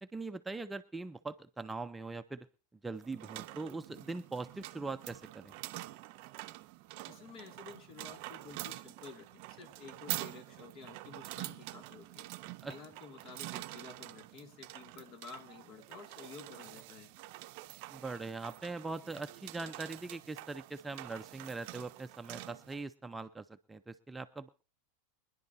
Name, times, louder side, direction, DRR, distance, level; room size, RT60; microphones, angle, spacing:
voice 1, 0.0-2.5 2.8-5.5 12.6-12.7 17.9-24.5, right 3 dB, 10° right, 8 dB, 0.6 m, -41 dB
sound 1, 3.0-22.8, right 19 dB, 55° right, 0.6 m, -46 dB
voice 2, 7.1-12.3 12.7-17.1, left 5 dB, 45° left, 7 dB, 2.3 m, -52 dB
24.0 x 11.0 x 2.7 m, 0.33 s
hypercardioid pair, 95°, 0 cm